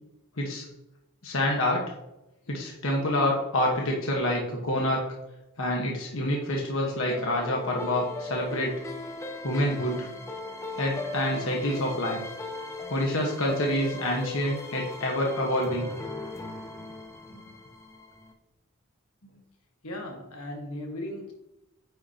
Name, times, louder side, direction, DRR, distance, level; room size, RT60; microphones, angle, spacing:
voice 1, 1.2-1.8 2.5-5.0 5.6-8.7 9.4-10.1 10.8-12.2 12.9-15.9 17.3-17.4, left 1 dB, 60° left, -1 dB, 1.3 m, -27 dB
sound 1, 7.1-18.3, left 2 dB, 10° left, 0.6 m, -38 dB
voice 2, 19.8-21.3, left 1 dB, 80° left, 1 dB, 1.5 m, -37 dB
9.2 x 5.7 x 2.9 m, 0.92 s
head